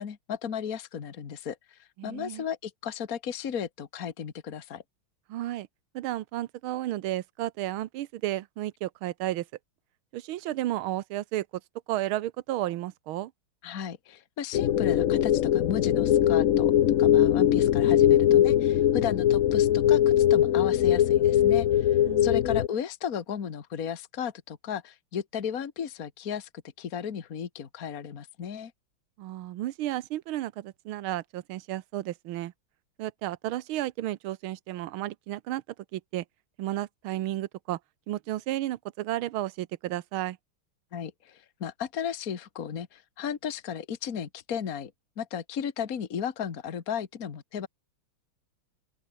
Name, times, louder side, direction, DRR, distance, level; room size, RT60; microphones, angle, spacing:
voice 1, 0.0-4.8 13.6-16.7 17.0-26.5 26.8-28.7 40.9-44.9 45.2-47.7, left 8 dB, 45° left, 1.9 m, -35 dB
voice 2, 2.0-2.4 5.3-5.7 5.9-9.5 10.1-11.5 11.9-13.3 22.0-22.4 29.2-32.5 33.0-35.6 35.9-36.2 36.6-37.8 38.1-40.4, right 14 dB, 80° right, 1.7 m, -32 dB
sound 1, 14.5-22.7, left 11 dB, 65° left, 0.8 m, -21 dB
open air
omnidirectional pair, 2.3 m